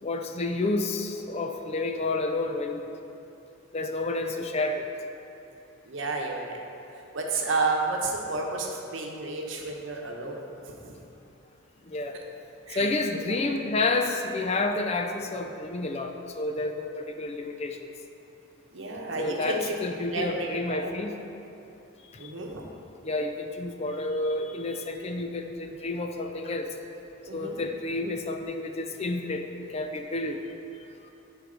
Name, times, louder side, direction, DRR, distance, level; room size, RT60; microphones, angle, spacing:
voice 1, 0.0-2.9 3.7-4.9 11.9-12.2 12.7-17.9 19.2-21.1 22.2-22.3 23.0-26.7 27.3-30.4, left 2 dB, 30° left, 5 dB, 0.4 m, -30 dB
voice 2, 5.9-6.6 7.1-10.5 12.7-13.4 18.7-19.7 20.1-20.9 22.2-22.6 27.3-27.6, right 3 dB, 65° right, 0 dB, 1.0 m, -31 dB
9.9 x 4.6 x 3.8 m, 2.7 s
head